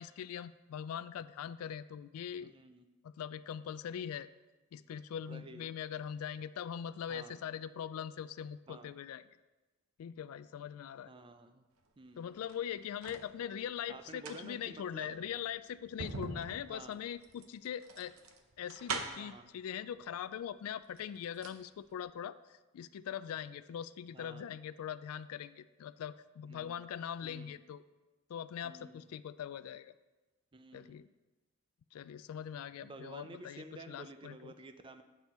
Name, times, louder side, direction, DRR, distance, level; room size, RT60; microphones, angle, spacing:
voice 1, 0.0-2.5 3.0-4.3 4.7-9.3 10.0-11.1 12.2-18.1 18.6-27.8 28.3-29.9 30.7-31.1 31.9-34.5, left 9 dB, 80° left, 15 dB, 0.3 m, -42 dB
voice 2, 2.4-2.8 5.3-5.7 7.1-7.4 8.7-8.9 11.1-11.6 12.0-12.3 13.9-15.2 16.7-17.0 19.2-19.5 24.1-24.4 26.5-26.8 27.2-27.5 28.6-29.0 30.5-31.0 32.8-35.0, right 2 dB, 25° right, 9 dB, 0.4 m, -51 dB
sound 1, 12.3-13.3 14.0-19.4 20.4-20.5 20.8-21.6 21.9-22.0, right 4 dB, 70° right, 0.8 m, -43 dB
8.2 x 6.1 x 4.2 m, 1.1 s
head